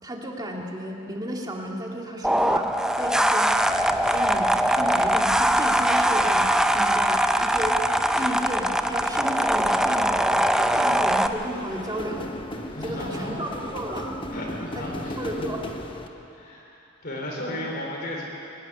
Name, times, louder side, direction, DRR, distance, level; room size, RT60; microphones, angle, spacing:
voice 1, 0.0-2.7 2.9-3.6 4.1-7.8 8.1-10.4 10.7-12.3 12.8-14.2 14.7-14.9 15.2-15.7, equal, 20° right, 0 dB, 2.1 m, -33 dB
sound 1, 2.2-11.3, right 1 dB, 5° right, 0.5 m, -22 dB
sound 2, 3.6-16.1, left 1 dB, 25° left, 1.1 m, -38 dB
voice 2, 12.7-13.4 14.3-15.5 16.3-18.3, left 1 dB, 50° left, -2 dB, 3.6 m, -34 dB
23.5 x 11.5 x 9.7 m, 2.9 s
head